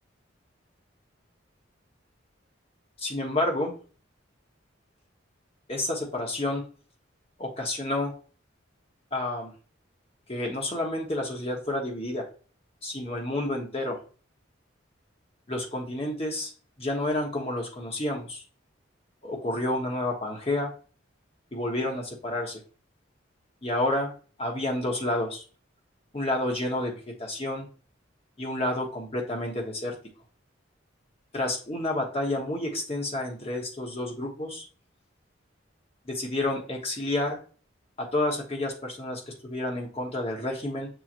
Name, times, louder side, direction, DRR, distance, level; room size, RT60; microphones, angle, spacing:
voice 1, 3.0-3.7 5.7-6.6 7.4-8.1 9.1-9.5 10.3-12.3 12.8-14.0 15.5-16.5 16.8-18.4 19.2-20.7 21.5-22.6 23.6-24.1 24.4-25.4 26.1-26.9 27.2-27.7 28.4-30.0 31.3-34.6 36.1-37.4 38.0-40.9, left 1 dB, 30° left, 0 dB, 1.1 m, -29 dB
6.7 x 2.9 x 2.5 m, 0.38 s
head